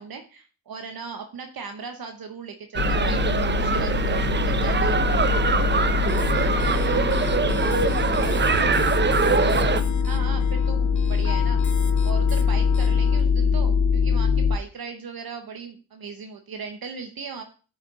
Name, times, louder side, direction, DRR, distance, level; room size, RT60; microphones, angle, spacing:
voice 1, 0.0-5.0 9.4-11.6 12.0-17.4, right 5 dB, 55° right, 5 dB, 0.9 m, -38 dB
sound 1, 2.7-9.8, right 5 dB, 25° right, 0.6 m, -23 dB
sound 2, 2.8-14.6, left 5 dB, 80° left, 0.6 m, -23 dB
sound 3, 5.7-13.2, left 8 dB, 40° left, 1.0 m, -39 dB
voice 2, 6.1-9.4, right 1 dB, ahead, 0 dB, 2.3 m, -41 dB
6.8 x 4.4 x 3.7 m, 0.37 s
supercardioid pair, 40°, 43 cm